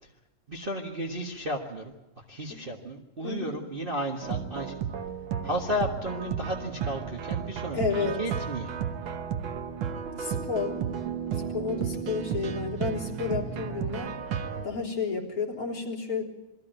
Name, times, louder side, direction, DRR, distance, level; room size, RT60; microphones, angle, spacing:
voice 1, 0.5-1.9 2.3-4.7 5.4-8.7, equal, 55° right, 0 dB, 0.5 m, -33 dB
voice 2, 3.2-3.6 7.7-8.2 10.2-10.7 11.5-14.1 14.6-16.2, left 5 dB, 25° left, -3 dB, 3.7 m, -31 dB
sound 1, 4.2-14.7, right 7 dB, 80° right, 1.1 m, -33 dB
22.5 x 14.5 x 9.1 m, 1.0 s
omnidirectional pair, 3.7 m